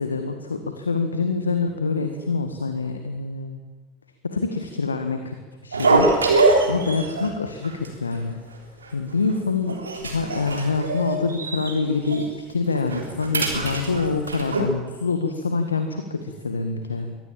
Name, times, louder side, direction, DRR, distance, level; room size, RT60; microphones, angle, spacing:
voice 1, 0.0-3.6 4.2-5.3 5.6-6.1 6.7-8.4 8.9-17.2, left 4 dB, 85° left, 7 dB, 1.6 m, -26 dB
sound 1, 5.7-7.3 7.6-7.9 8.1-8.2 8.8-9.3 9.7-11.7 12.1-12.2 12.7-14.6, right 3 dB, 85° right, 3.7 m, -23 dB
23.0 x 17.5 x 7.6 m, 1.3 s
figure-of-eight pair, 75°, 0 cm